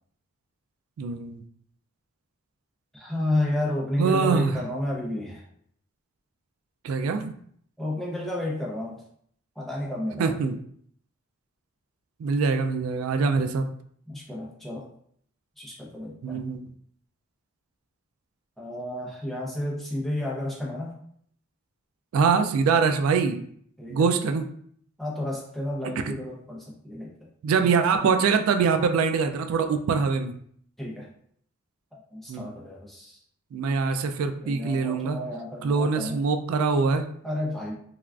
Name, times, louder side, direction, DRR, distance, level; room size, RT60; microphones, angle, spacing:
voice 1, 1.0-1.4 4.0-4.6 6.8-7.3 10.2-10.6 12.2-13.7 16.2-16.7 22.1-23.4 23.9-24.5 26.0-26.1 27.4-30.4 32.3-32.5 33.5-35.2 35.6-37.1, right 5 dB, 80° right, 9 dB, 0.3 m, -24 dB
voice 2, 2.9-5.4 7.8-9.0 9.6-10.4 14.1-14.8 15.6-16.4 18.6-20.9 23.8-24.1 25.0-27.1 30.8-31.1 31.9-33.2 34.4-36.2 37.2-37.7, left 1 dB, ahead, -4 dB, 0.6 m, -31 dB
3.3 x 2.3 x 2.3 m, 0.62 s
head